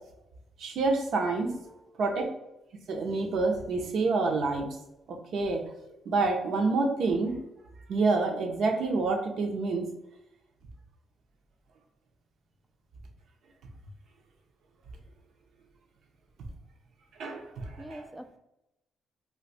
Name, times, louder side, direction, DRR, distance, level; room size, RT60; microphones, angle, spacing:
voice 1, 0.6-1.5 2.0-2.3 2.9-4.7 5.1-5.6 6.1-7.4 7.9-9.9 17.2-18.1, right 3 dB, 65° right, 3 dB, 0.6 m, -27 dB
voice 2, 1.4-1.8 17.8-18.4, right 1 dB, 5° right, 7 dB, 0.3 m, -45 dB
2.6 x 2.3 x 3.9 m, 0.90 s
cardioid pair, 90°, 0 cm